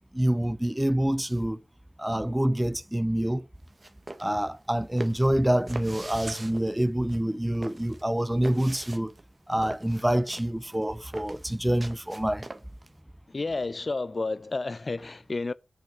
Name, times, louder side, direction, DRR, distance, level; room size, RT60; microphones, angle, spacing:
voice 1, 0.1-1.6 2.0-3.5 4.2-9.1 9.5-12.5, right 1 dB, 10° right, 0.5 m, -26 dB
sound 1, 3.6-12.9, right 2 dB, 35° right, 1.0 m, -42 dB
voice 2, 13.3-15.5, left 3 dB, 45° left, 0.6 m, -31 dB
8.9 x 5.7 x 7.2 m
wide cardioid pair, 70°, 0 cm